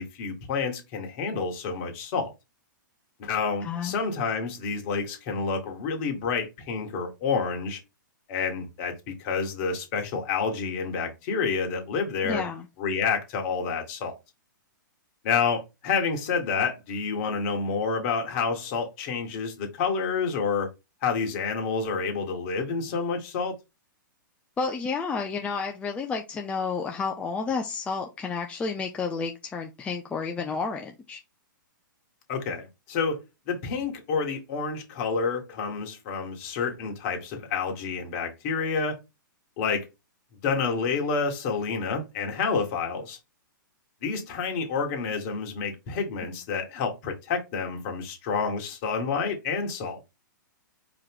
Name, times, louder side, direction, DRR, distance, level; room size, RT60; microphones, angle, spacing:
voice 1, 0.0-2.3 3.2-7.8 8.3-12.4 12.8-14.1 15.2-20.7 21.0-23.5 32.3-33.2 33.5-39.0 39.6-39.9 40.4-43.2 44.0-50.0, left 5 dB, 45° left, 1.6 m, -29 dB
voice 2, 3.6-4.0 12.2-12.7 24.6-31.2, left 5 dB, 10° left, 0.4 m, -31 dB
4.7 x 3.1 x 3.6 m
hypercardioid pair, 135°, 11 cm